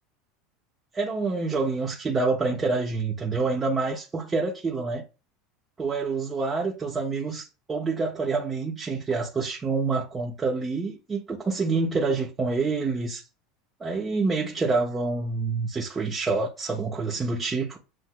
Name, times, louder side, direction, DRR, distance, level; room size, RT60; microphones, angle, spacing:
voice 1, 0.9-5.0 5.8-13.2 13.8-17.8, right 4 dB, 25° right, 1.0 m, -27 dB
7.7 x 2.7 x 2.2 m
hypercardioid pair, 95°, 0 cm